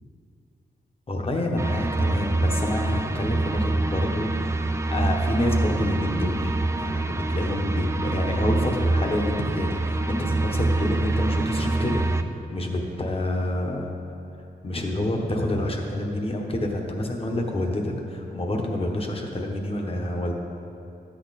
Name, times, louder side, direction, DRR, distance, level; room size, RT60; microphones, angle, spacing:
voice 1, 1.1-13.9 14.6-20.3, left 1 dB, 35° left, 1 dB, 1.2 m, -28 dB
sound 1, 1.6-12.2, right 2 dB, 15° right, 0.4 m, -25 dB
13.5 x 8.5 x 4.1 m, 2.8 s
wide cardioid pair, 150°, 18 cm